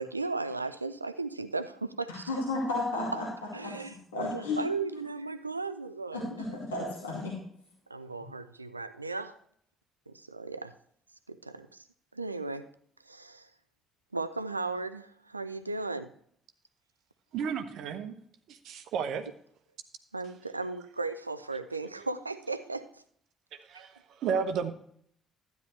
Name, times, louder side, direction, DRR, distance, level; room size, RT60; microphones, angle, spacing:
voice 1, 0.0-2.3 3.5-6.3 7.9-9.4 10.1-10.8 11.3-11.9 12.1-12.7 13.1-13.5 14.1-16.1 20.1-23.0, right 3 dB, 85° right, 0.4 m, -36 dB
voice 2, 2.1-3.3 3.6-3.7 4.1-4.6 6.1-7.3, left 2 dB, 75° left, 2.4 m, -32 dB
voice 3, 17.3-18.2 18.5-19.3 23.5-24.7, right 6 dB, 60° right, 0.9 m, -33 dB
12.5 x 9.5 x 3.2 m
figure-of-eight pair, 45°, 0 cm